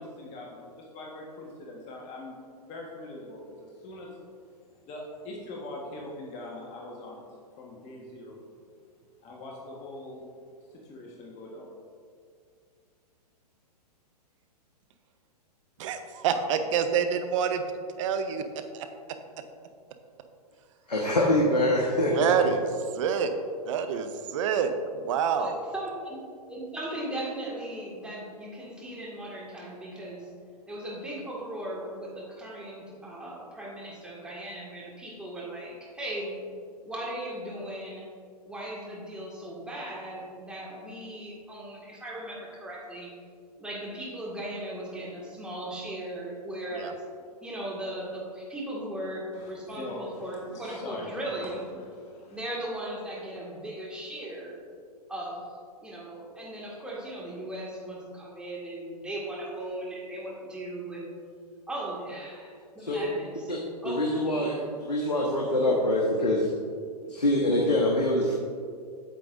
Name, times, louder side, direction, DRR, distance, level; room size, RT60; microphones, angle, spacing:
voice 1, 0.0-4.2 4.5-7.2 7.6-8.3 9.2-10.3 10.7-11.7 49.3-51.1 51.4-52.4, left 2 dB, 35° left, -2 dB, 1.4 m, -42 dB
voice 2, 15.8-17.6 18.0-18.9 22.1-22.6 23.0-23.3 23.7-25.6 46.7-46.9, right 7 dB, 50° right, 8 dB, 0.7 m, -27 dB
voice 3, 20.9-22.5 62.8-63.0 63.5-63.6 63.8-66.5 67.1-68.3, left 1 dB, 90° left, -2 dB, 1.1 m, -25 dB
voice 4, 25.4-26.2 26.5-30.3 30.7-36.4 36.9-38.1 38.5-43.1 43.6-46.9 47.4-51.6 52.3-54.5 55.1-55.4 55.8-61.1 61.7-63.5 63.8-64.0 64.3-64.5, right 1 dB, 5° right, -5 dB, 1.9 m, -37 dB
8.9 x 7.5 x 2.6 m, 2.2 s
hypercardioid pair, 115°, 21 cm